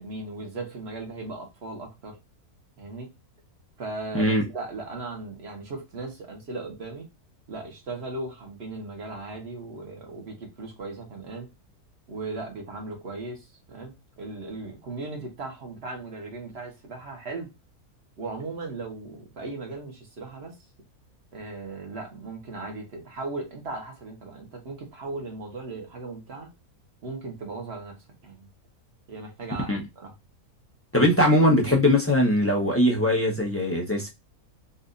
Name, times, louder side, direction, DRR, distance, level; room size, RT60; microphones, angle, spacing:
voice 1, 0.0-2.2 2.8-3.1 3.8-7.1 7.5-11.5 12.1-17.5 18.2-20.6 21.3-26.5 27.0-28.5 29.1-29.7 30.0-30.1, right 3 dB, 45° right, 1.4 m, -37 dB
voice 2, 30.9-34.1, left 1 dB, 10° left, 0.7 m, -21 dB
4.1 x 2.6 x 2.5 m
omnidirectional pair, 1.6 m